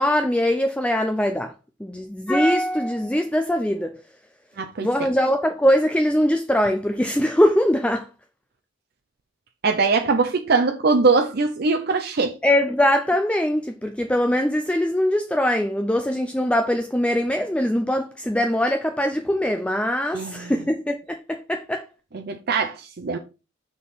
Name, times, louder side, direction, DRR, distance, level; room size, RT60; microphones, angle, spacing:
voice 1, 0.0-1.5 1.8-4.0 4.8-8.1 12.4-21.9, left 1 dB, 5° left, 0.4 m, -22 dB
voice 2, 4.6-4.9 9.6-12.4 20.1-20.4 22.2-23.2, right 4 dB, 50° right, 0.6 m, -21 dB
6.5 x 3.7 x 5.9 m
head